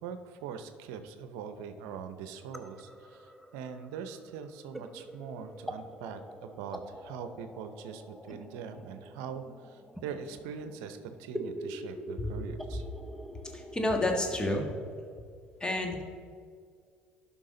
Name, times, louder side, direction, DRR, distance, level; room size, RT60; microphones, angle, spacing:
voice 1, 0.0-12.8, right 7 dB, 80° right, 9 dB, 0.6 m, -42 dB
sound 1, 1.4-15.2, equal, ahead, 0.7 m, -45 dB
voice 2, 13.5-14.8 15.6-16.0, left 1 dB, 20° left, 3 dB, 1.5 m, -30 dB
11.0 x 5.8 x 3.8 m, 2.1 s
supercardioid pair, 75°, 5 cm